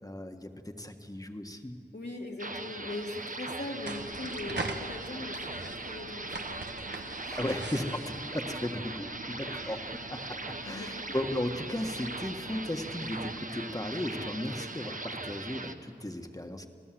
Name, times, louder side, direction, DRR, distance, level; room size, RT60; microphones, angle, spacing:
voice 1, 0.0-1.8 7.3-9.8 10.1-10.2 10.6-16.7, left 1 dB, 20° left, 5 dB, 1.7 m, -35 dB
voice 2, 1.9-7.5 9.5-10.0 10.6-11.0, left 2 dB, 80° left, 0 dB, 2.7 m, -41 dB
sound 1, 2.4-15.7, right 2 dB, 50° right, 1.1 m, -40 dB
sound 2, 3.9-13.4, right 2 dB, 80° right, 1.5 m, -43 dB
26.5 x 16.5 x 7.8 m, 2.4 s
wide cardioid pair, 50°, 17 cm